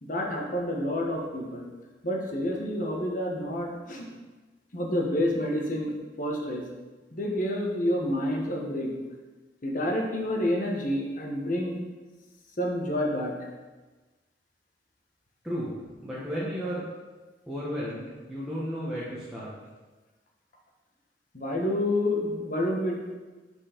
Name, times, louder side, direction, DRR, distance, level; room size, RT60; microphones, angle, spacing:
voice 1, 0.0-1.7 2.0-4.1 4.7-5.9 6.2-6.6 7.1-8.9 9.6-11.8 12.6-13.3 21.3-23.0, left 1 dB, 50° left, 0 dB, 1.3 m, -28 dB
voice 2, 15.4-15.7 16.0-16.8 17.5-19.5, equal, 5° right, -9 dB, 1.3 m, -33 dB
8.5 x 4.6 x 5.1 m, 1.3 s
head